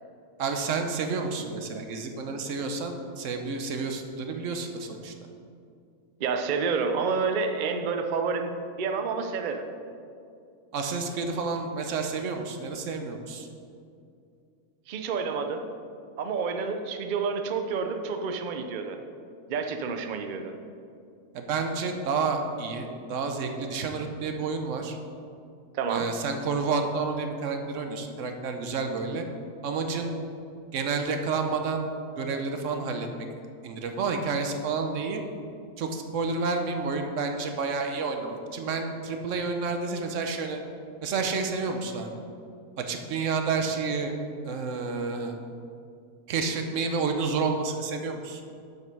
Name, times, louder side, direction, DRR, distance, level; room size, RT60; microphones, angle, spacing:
voice 1, 0.4-5.1 10.7-13.5 21.3-25.0 25.9-29.2 29.6-30.2 30.7-31.9 32.2-33.3 33.6-35.2 35.8-40.6 41.0-42.1 42.8-44.1 44.4-45.4 46.3-48.4, right 4 dB, 60° right, 5 dB, 1.0 m, -30 dB
voice 2, 6.2-9.6 14.9-15.6 16.2-19.0 19.5-20.5 25.7-26.1, right 5 dB, 85° right, 6 dB, 0.4 m, -29 dB
7.7 x 5.5 x 5.3 m, 2.4 s
omnidirectional pair, 1.6 m